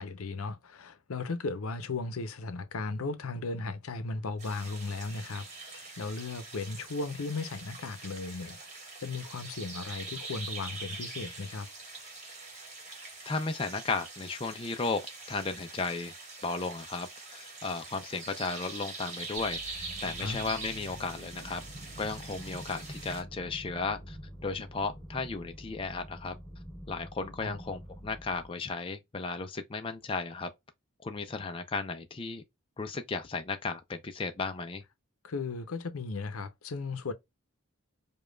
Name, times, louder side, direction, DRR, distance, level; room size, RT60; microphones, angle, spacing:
voice 1, 0.0-8.6 9.0-11.7 20.0-20.4 27.4-27.6 35.2-37.1, left 3 dB, 85° left, 0.7 m, -36 dB
sound 1, 4.4-23.2, right 3 dB, 35° right, 1.5 m, -44 dB
voice 2, 13.3-15.0 15.3-16.1 16.4-21.6 22.0-24.2 24.4-26.3 26.9-30.5 31.0-32.4 32.8-34.8, left 4 dB, 25° left, 0.4 m, -35 dB
sound 2, 19.4-28.5, equal, 10° left, 1.6 m, -46 dB
5.0 x 2.3 x 2.2 m
head